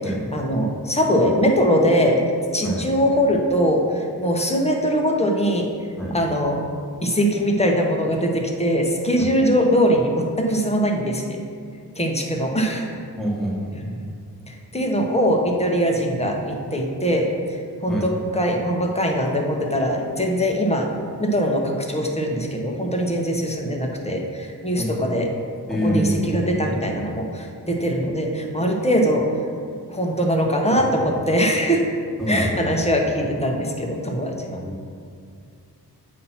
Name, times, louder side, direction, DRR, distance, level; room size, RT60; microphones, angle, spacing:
voice 1, 0.3-2.2 2.5-5.7 6.1-6.6 7.0-11.4 12.0-12.9 14.5-20.9 21.2-25.3 25.8-29.4 29.9-32.0 32.3-34.6, equal, 15° left, 1 dB, 0.9 m, -22 dB
voice 2, 13.2-14.0 17.9-18.1 24.8-24.9 25.7-26.5 31.1-31.2 32.2-32.7 34.6-34.8, equal, ahead, -4 dB, 1.5 m, -25 dB
8.4 x 2.8 x 5.6 m, 2.3 s
cardioid pair, 65°, 40 cm